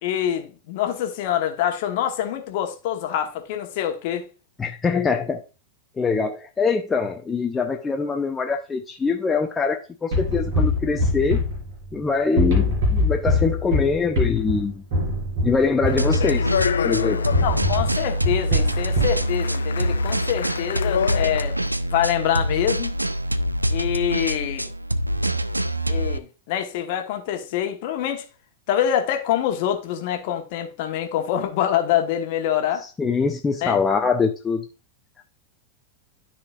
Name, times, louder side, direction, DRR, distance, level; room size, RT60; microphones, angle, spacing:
voice 1, 0.0-4.3 17.4-21.6 21.8-22.9 23.7-24.7 25.9-28.2 28.7-32.8 33.6-33.8, left 10 dB, 50° left, 1.2 m, -25 dB
voice 2, 4.6-5.4 6.0-11.4 11.9-14.8 15.4-16.5 16.8-17.3 32.8-34.6, left 5 dB, 15° left, 0.6 m, -23 dB
sound 1, 10.1-12.0 12.4-16.8 17.3-19.3, left 1 dB, 50° right, 3.6 m, -24 dB
Speech, 15.9-21.7, left 8 dB, 65° left, 0.4 m, -29 dB
sound 2, 16.0-26.2, equal, 85° right, 0.3 m, -25 dB
12.5 x 4.3 x 2.4 m
figure-of-eight pair, 90°, 0 cm